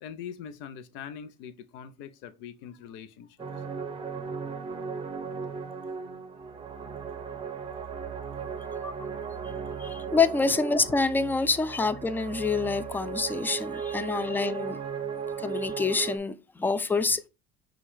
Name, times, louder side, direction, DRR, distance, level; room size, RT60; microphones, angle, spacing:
voice 1, 0.0-3.4 5.9-6.0 7.7-7.8 8.4-8.7 13.9-14.0, left 8 dB, 65° left, 0.7 m, -43 dB
sound 1, 3.4-16.2, right 6 dB, 25° right, 0.7 m, -36 dB
voice 2, 9.8-14.8 15.4-17.3, left 4 dB, 10° left, 0.4 m, -27 dB
5.9 x 2.4 x 3.6 m
supercardioid pair, 100°, 21 cm